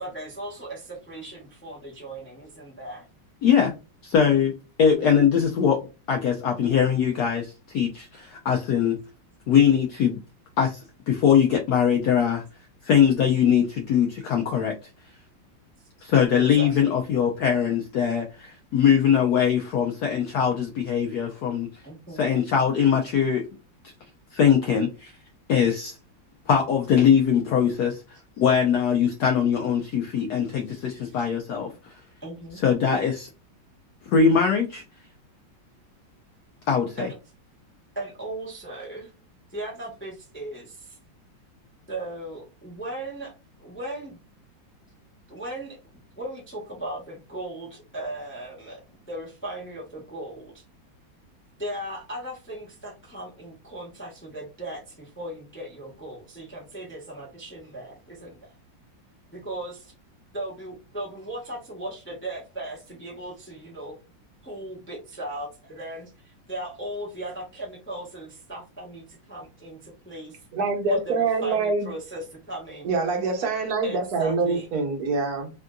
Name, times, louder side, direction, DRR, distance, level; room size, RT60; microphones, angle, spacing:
voice 1, 0.0-3.1 16.3-17.0 21.8-22.3 30.7-31.3 32.2-32.6 37.0-37.2 37.9-39.1 39.5-41.0 41.9-43.3 43.6-44.2 45.3-45.8 46.2-48.8 49.1-50.6 51.6-58.5 59.3-59.9 60.3-64.0 64.4-70.4 70.9-72.9 73.8-74.7, right 1 dB, 10° left, 0.7 m, -37 dB
voice 2, 3.4-3.7 4.0-4.5 4.8-5.8 6.1-9.0 9.5-10.2 10.6-12.4 12.8-14.7 16.0-21.7 22.2-23.4 24.3-25.1 25.5-26.0 26.5-28.0 28.4-31.7 32.6-33.3 34.1-34.8 36.7-37.1, left 7 dB, 70° left, 1.0 m, -21 dB
voice 3, 70.5-71.9 72.8-75.5, right 4 dB, 60° right, 1.2 m, -25 dB
3.6 x 2.5 x 2.2 m
omnidirectional pair, 2.1 m